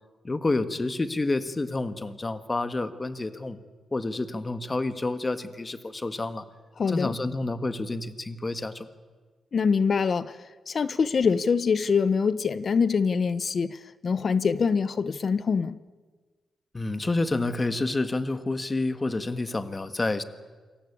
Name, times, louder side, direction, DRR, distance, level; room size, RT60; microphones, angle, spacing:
voice 1, 0.2-3.6 3.9-6.4 6.9-8.9 16.7-20.2, left 2 dB, 20° left, 1.6 m, -29 dB
voice 2, 6.8-7.1 9.5-10.4 10.7-13.8 14.0-15.7, left 5 dB, 45° left, 0.9 m, -24 dB
28.0 x 23.5 x 8.6 m
cardioid pair, 115°, 0 cm